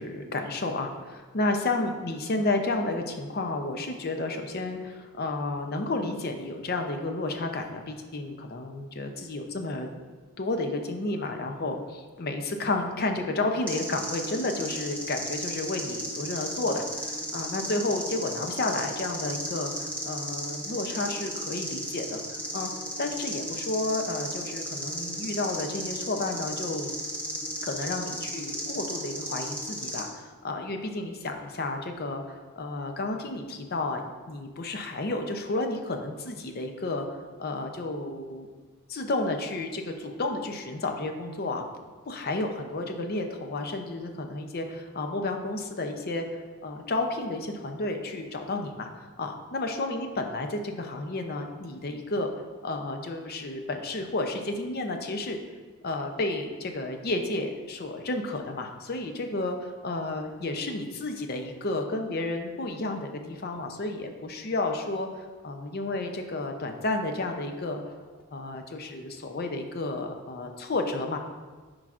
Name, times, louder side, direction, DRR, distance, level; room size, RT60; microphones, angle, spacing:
voice 1, 0.0-9.9 10.4-22.7 23.0-26.9 27.6-37.1 37.4-38.5 38.9-41.6 42.1-55.4 55.8-67.9 68.3-71.2, left 2 dB, 45° left, 5 dB, 0.5 m, -31 dB
sound 1, 13.7-30.0, equal, 5° left, 1.0 m, -35 dB
9.9 x 4.8 x 2.5 m, 1.4 s
head